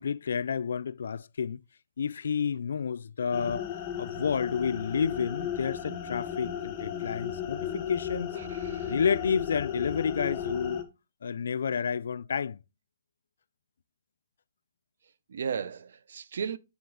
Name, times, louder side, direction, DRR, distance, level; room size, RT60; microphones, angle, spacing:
voice 1, 0.0-1.6 2.0-3.7 4.0-8.4 8.8-10.8 11.2-12.6, left 6 dB, 80° left, 0.3 m, -30 dB
sound 1, 3.3-10.8, left 9 dB, 25° left, 0.9 m, -35 dB
voice 2, 8.4-8.9 15.3-16.6, right 7 dB, 70° right, 0.5 m, -35 dB
7.0 x 3.8 x 3.6 m
hypercardioid pair, 160°, 0 cm